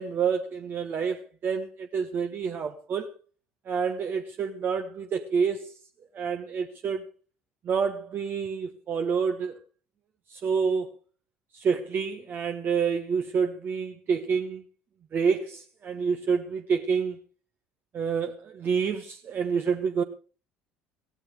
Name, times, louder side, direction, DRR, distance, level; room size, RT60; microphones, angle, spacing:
voice 1, 0.0-3.1 3.6-5.7 6.1-7.1 7.6-9.6 10.3-10.9 11.5-14.6 15.1-17.2 17.9-20.0, right 6 dB, 40° right, 1.2 m, -28 dB
17.5 x 16.5 x 3.3 m
figure-of-eight pair, 60°, 6 cm